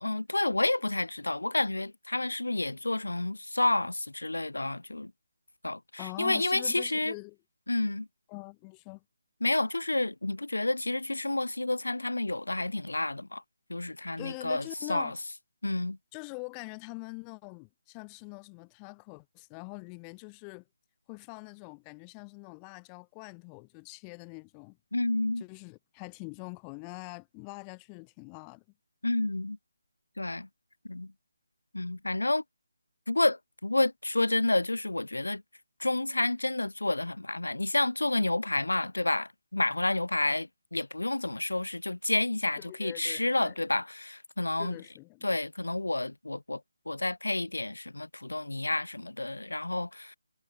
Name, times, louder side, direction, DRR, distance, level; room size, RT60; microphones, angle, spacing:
voice 1, 0.0-5.1 5.6-7.1 7.7-8.1 9.4-13.4 13.7-15.1 15.6-16.0 24.9-25.4 29.0-29.6 30.2-30.5 30.8-31.1 31.7-32.4 33.1-35.4 35.8-44.8 45.2-46.6 46.9-50.2, left 2 dB, 85° left, 1.0 m, -30 dB
voice 2, 6.0-7.4 8.3-9.0 14.2-15.2 16.1-20.6 21.1-24.8 25.4-28.6 42.6-43.5 44.6-45.3, left 40 dB or more, 20° left, 0.7 m, -44 dB
figure-of-eight pair, 150°, 0 cm